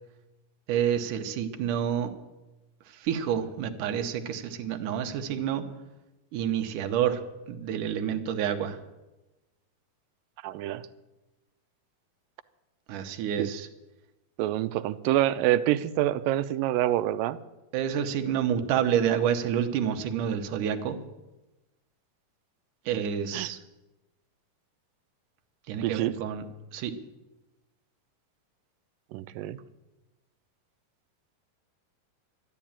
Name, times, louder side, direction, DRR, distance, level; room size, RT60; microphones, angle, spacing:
voice 1, 0.7-2.1 2.9-5.7 6.3-7.2 7.5-8.8 12.9-13.7 17.7-21.0 22.9-23.6 25.7-26.5 26.7-26.9, right 9 dB, 75° right, 6 dB, 2.5 m, -28 dB
voice 2, 10.4-10.9 13.4-13.5 14.4-17.4 23.3-23.5 25.8-26.1 29.1-29.6, right 13 dB, 90° right, 14 dB, 2.4 m, -26 dB
12.5 x 12.0 x 8.8 m, 1.0 s
omnidirectional pair, 3.9 m